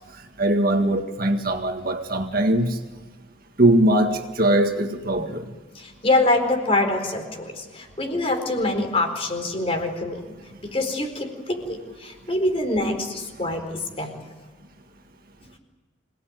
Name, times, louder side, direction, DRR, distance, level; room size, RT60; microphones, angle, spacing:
voice 1, 0.4-2.8 3.6-5.4, right 1 dB, 45° right, 5 dB, 1.8 m, -21 dB
voice 2, 5.7-10.2 10.7-14.1, left 2 dB, 30° left, 4 dB, 4.5 m, -25 dB
26.5 x 19.0 x 9.3 m, 1.4 s
head